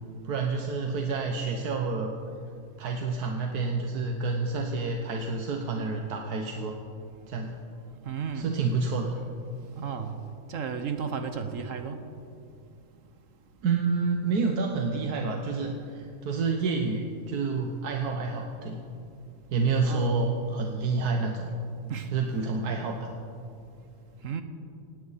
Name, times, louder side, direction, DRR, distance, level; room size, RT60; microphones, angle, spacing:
voice 1, 0.2-2.1 2.8-6.8 7.3-7.5 8.3-9.2 13.6-18.9 19.5-21.5 22.1-23.1, right 4 dB, 90° right, 2 dB, 1.5 m, -29 dB
voice 2, 8.0-8.5 9.7-10.2 10.5-12.0 19.8-20.3 21.9-22.1 24.2-24.4, right 6 dB, 60° right, 8 dB, 1.3 m, -33 dB
18.5 x 17.0 x 4.2 m, 2.5 s
omnidirectional pair, 1.6 m